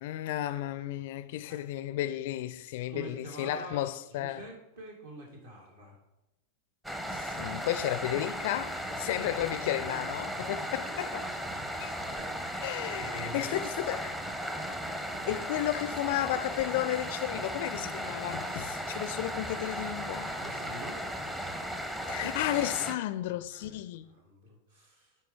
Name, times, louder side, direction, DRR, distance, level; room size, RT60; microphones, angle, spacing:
voice 1, 0.0-4.4 7.1-11.2 11.8-12.0 12.6-14.1 15.3-20.3 22.1-24.1, left 13 dB, 50° left, 0.4 m, -33 dB
voice 2, 2.9-6.0 9.7-9.9 10.5-10.9 11.7-12.3 12.9-13.6 15.2-15.3 20.4-21.0 23.5-23.8 24.1-25.2, right 1 dB, 65° right, 2.3 m, -46 dB
sound 1, 6.8-22.9, equal, 10° right, 0.7 m, -36 dB
10.0 x 4.5 x 3.5 m
figure-of-eight pair, 90°, 0 cm